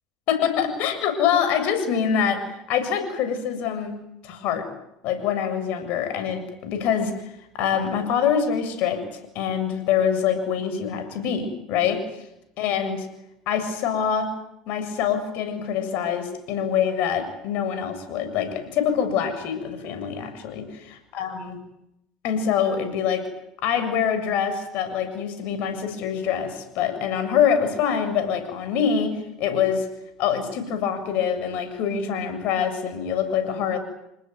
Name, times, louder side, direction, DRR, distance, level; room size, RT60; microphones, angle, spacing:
voice 1, 0.3-3.9 4.2-4.7 5.0-12.0 12.6-13.0 13.5-14.3 14.7-21.6 22.2-23.3 23.6-29.9 30.2-33.8, left 8 dB, 65° left, 9 dB, 7.4 m, -25 dB
28.0 x 19.5 x 9.6 m, 0.82 s
hypercardioid pair, 80°, 3 cm